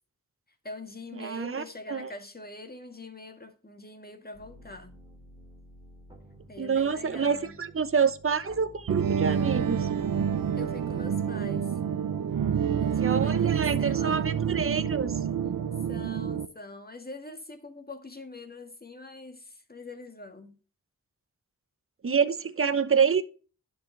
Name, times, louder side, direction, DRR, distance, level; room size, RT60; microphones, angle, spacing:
voice 1, 0.6-5.0 6.5-7.6 10.6-11.8 12.8-14.3 15.9-20.6, left 2 dB, 30° left, 1.8 m, -44 dB
voice 2, 1.2-2.1 6.6-9.9 13.0-15.2 22.0-23.2, right 6 dB, 40° right, 0.9 m, -27 dB
sound 1, 4.3-15.3, right 1 dB, 15° right, 2.5 m, -51 dB
sound 2, 8.9-16.5, right 8 dB, 80° right, 0.7 m, -28 dB
11.0 x 5.2 x 3.2 m
wide cardioid pair, 65°, 33 cm